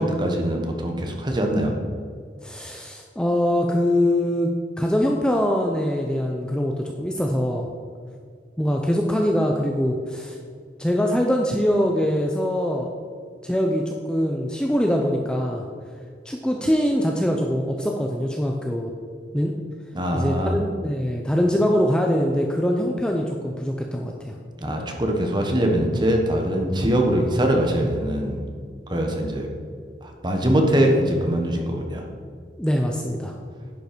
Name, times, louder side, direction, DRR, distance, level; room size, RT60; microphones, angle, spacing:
voice 1, 0.0-1.7 19.9-20.6 24.6-28.4 28.9-29.5 30.0-32.0, right 1 dB, 25° right, 2 dB, 1.1 m, -22 dB
voice 2, 2.4-7.7 8.6-10.4 10.8-12.9 13.4-15.6 16.3-18.9 19.3-19.5 20.1-24.3 32.6-33.3, equal, 5° left, 1 dB, 0.5 m, -23 dB
10.5 x 5.3 x 5.1 m, 2.1 s
head